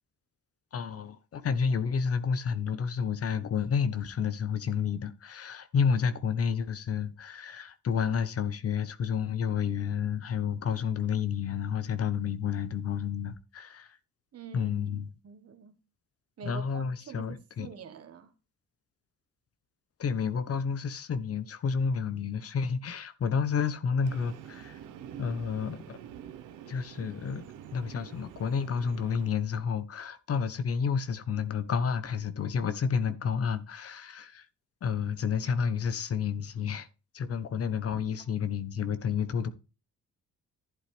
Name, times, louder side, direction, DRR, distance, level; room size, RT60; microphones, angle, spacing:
voice 1, 0.7-14.0 14.5-15.1 16.4-17.7 20.0-24.8 25.2-26.0 26.7-27.5 27.7-34.5 34.8-36.9 37.1-39.5, left 6 dB, 50° left, 1.0 m, -30 dB
voice 2, 14.3-14.7 15.2-15.8 16.4-18.3, right 7 dB, 55° right, 1.5 m, -45 dB
Train, 24.0-29.3, right 10 dB, 90° right, 1.1 m, -47 dB
11.5 x 8.0 x 3.4 m
cardioid pair, 90°, 30 cm